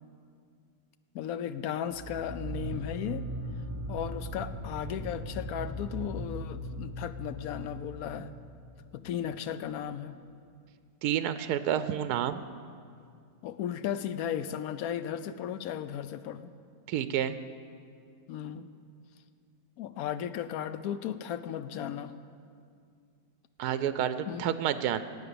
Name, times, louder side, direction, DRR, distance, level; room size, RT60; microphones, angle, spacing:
voice 1, 1.1-3.2 3.9-8.3 8.9-10.1 13.4-16.5 18.3-18.7 19.8-22.1 24.3-24.5, left 9 dB, 75° left, 12 dB, 1.0 m, -35 dB
sound 1, 1.9-9.2, right 1 dB, 30° right, 1.8 m, -39 dB
voice 2, 11.0-12.4 16.9-17.4 23.6-25.0, right 10 dB, 85° right, 12 dB, 1.1 m, -29 dB
16.0 x 8.8 x 6.9 m, 2.3 s
omnidirectional pair, 1.6 m